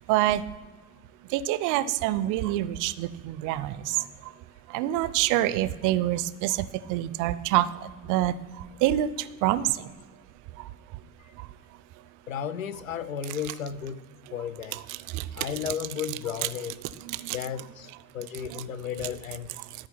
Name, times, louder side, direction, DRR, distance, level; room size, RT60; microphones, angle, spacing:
voice 1, 0.1-0.4 1.3-4.0 4.7-7.7 8.1-8.3 8.8-9.1 9.4-9.9 14.7-15.5 17.0-17.4 18.5-18.6, right 14 dB, 50° right, 0.5 m, -26 dB
voice 2, 12.3-14.0 14.3-14.8 15.3-16.8 17.3-19.5, left 8 dB, 80° left, 0.5 m, -34 dB
12.5 x 4.8 x 5.9 m
figure-of-eight pair, 50°, 40 cm